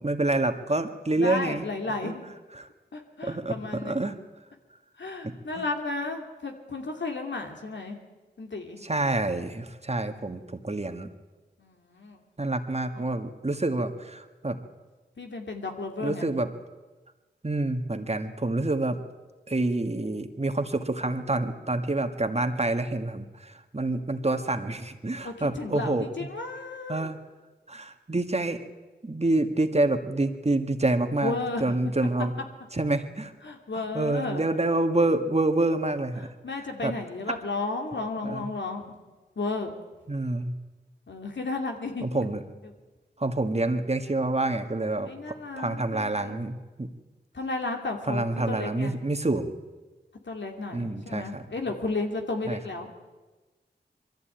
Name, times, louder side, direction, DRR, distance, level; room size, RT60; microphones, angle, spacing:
voice 1, 0.0-1.6 2.0-2.1 2.6-2.7 3.2-4.1 5.2-5.6 8.8-11.1 12.4-14.6 16.0-16.5 17.4-19.0 19.5-26.3 26.9-27.2 27.7-28.7 29.0-32.3 32.7-33.3 33.7-36.3 36.6-36.9 38.2-38.5 40.1-40.5 42.0-42.4 43.2-45.1 45.6-46.9 48.1-49.5 50.7-51.4 52.5-52.6, right 2 dB, 35° right, 7 dB, 1.7 m, -27 dB
voice 2, 1.2-2.2 2.9-4.0 5.0-8.0 8.4-8.9 11.6-12.2 12.9-13.2 15.2-16.3 25.2-27.1 31.2-31.8 33.4-34.4 36.4-38.9 39.4-39.7 41.1-42.0 45.1-46.4 47.3-48.9 50.3-52.9, left 3 dB, 80° left, 3 dB, 2.7 m, -33 dB
22.0 x 14.5 x 9.1 m, 1.2 s
cardioid pair, 45°, 19 cm